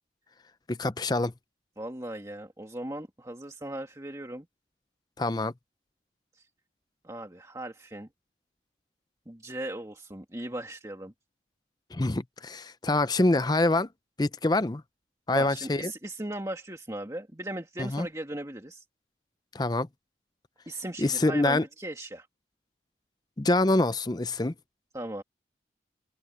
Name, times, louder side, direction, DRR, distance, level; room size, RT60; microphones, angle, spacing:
voice 1, 0.7-1.3 5.2-5.5 11.9-13.9 14.2-14.8 15.3-15.9 17.8-18.1 19.5-19.9 21.0-21.7 23.4-24.5, left 2 dB, 20° left, 0.5 m, -25 dB
voice 2, 1.8-4.5 6.3-6.5 7.0-8.1 9.3-11.1 15.3-18.8 20.7-22.3 24.9-25.2, right 1 dB, 20° right, 2.3 m, -38 dB
head